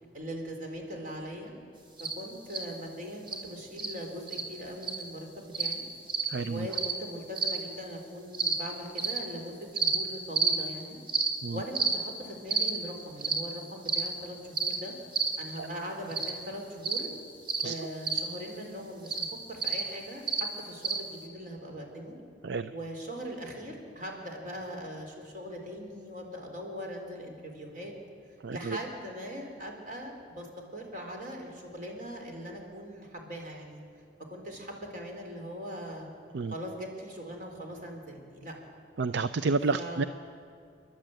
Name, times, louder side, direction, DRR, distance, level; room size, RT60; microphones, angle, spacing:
voice 1, 0.1-1.5 2.0-5.8 6.4-11.0 11.5-14.9 15.4-17.1 17.6-22.2 22.7-27.9 28.5-30.5 30.7-33.8 34.3-36.1 36.5-38.5 39.7-40.1, equal, 50° right, 2 dB, 4.1 m, -40 dB
sound 1, 2.0-2.1 2.5-2.6 3.3-3.4 3.8-3.9 4.3-4.4 4.8-5.0 5.5-5.8 6.1-6.3 6.7-6.9 7.4-7.6 8.3-8.6 9.0-9.2 9.8-10.0 10.4-10.6 11.1-11.3 11.8-12.0 12.5-12.7 13.2-13.4 13.9-14.1 14.6-14.8 15.1-15.4 16.1-16.3 16.8-17.1 17.5-17.6 18.0-18.2 19.1-19.3 19.6-19.8 20.3-20.4 20.8-21.0, right 5 dB, 30° right, 2.5 m, -29 dB
voice 2, 6.3-6.7 11.4-11.6 15.6-15.7 17.6-17.7 22.4-22.7 28.4-28.8 36.3-36.5 39.0-40.0, right 4 dB, 70° right, 12 dB, 0.5 m, -30 dB
29.5 x 11.5 x 8.9 m, 2.3 s
head